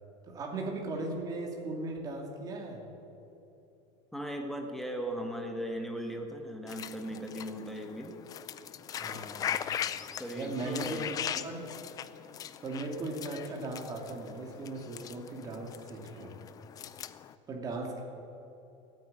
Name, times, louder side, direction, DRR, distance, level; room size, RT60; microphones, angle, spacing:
voice 1, 0.3-2.8 9.0-9.6 10.3-11.7 12.6-16.4 17.5-18.0, right 2 dB, 25° right, 1 dB, 2.5 m, -38 dB
voice 2, 4.1-8.1 10.2-11.1, equal, ahead, 3 dB, 1.3 m, -38 dB
sound 1, 6.7-17.3, left 9 dB, 25° left, 0.5 m, -40 dB
15.0 x 9.1 x 9.6 m, 3.0 s
supercardioid pair, 150°, 14 cm